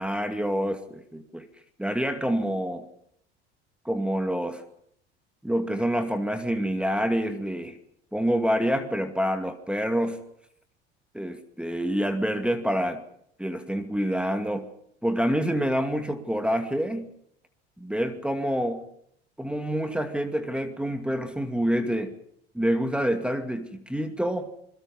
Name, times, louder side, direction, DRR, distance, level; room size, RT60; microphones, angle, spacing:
voice 1, 0.0-1.5 1.8-2.8 3.8-4.6 5.4-7.7 8.1-10.2 11.1-13.0 13.4-14.7 15.0-17.1 17.8-18.8 19.4-22.1 22.5-24.5, equal, 5° right, 7 dB, 2.4 m, -27 dB
27.0 x 22.0 x 5.5 m, 0.70 s
hypercardioid pair, 75°, 31 cm